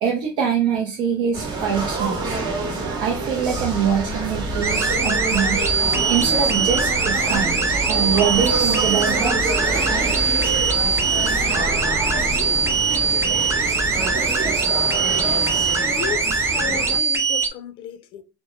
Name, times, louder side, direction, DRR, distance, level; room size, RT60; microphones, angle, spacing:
voice 1, 0.0-2.4 3.0-5.6 6.1-7.6 7.9-9.4, right 7 dB, 70° right, 0.5 m, -24 dB
sound 1, 1.3-17.0, right 3 dB, 50° right, 0.9 m, -27 dB
sound 2, 3.5-14.3, equal, 90° right, 1.1 m, -32 dB
sound 3, 4.6-17.5, right 4 dB, 25° right, 0.6 m, -22 dB
voice 2, 15.8-18.2, left 9 dB, 60° left, 0.4 m, -34 dB
2.1 x 2.0 x 3.0 m
supercardioid pair, 100°, 10 cm